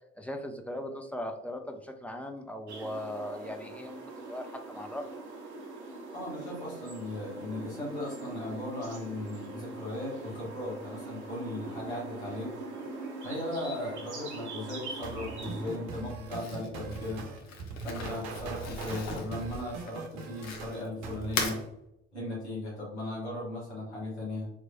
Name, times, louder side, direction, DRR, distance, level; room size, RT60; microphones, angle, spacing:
voice 1, 0.2-4.0 4.2-5.0, left 1 dB, 5° left, 4 dB, 0.6 m, -38 dB
sound 1, 2.7-16.0, right 2 dB, 85° right, 0.7 m, -42 dB
voice 2, 6.1-12.5 13.2-17.3 17.8-21.6 22.1-24.5, left 1 dB, 90° left, -6 dB, 1.5 m, -37 dB
sound 2, 15.0-21.7, right 4 dB, 55° right, 0.9 m, -41 dB
Crumpling crinkling, 16.3-20.9 21.2-21.6, left 3 dB, 55° left, 0.9 m, -37 dB
4.2 x 3.0 x 2.7 m, 0.84 s
figure-of-eight pair, 55°, 33 cm